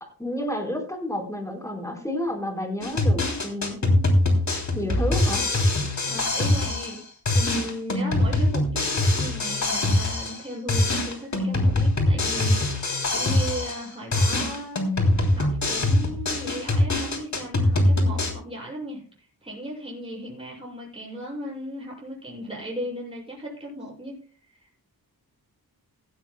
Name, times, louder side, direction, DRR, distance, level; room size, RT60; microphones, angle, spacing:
voice 1, 0.2-3.8 4.7-5.4, left 1 dB, 10° left, 2 dB, 4.3 m, -30 dB
sound 1, 2.8-7.0 7.3-10.4 10.7-13.9 14.1-18.3, left 1 dB, 50° left, 3.2 m, -23 dB
voice 2, 6.1-7.0 7.3-24.1 24.4-24.7, equal, 15° right, -5 dB, 6.6 m, -36 dB
16.5 x 16.0 x 2.2 m, 0.40 s
wide cardioid pair, 160°, 38 cm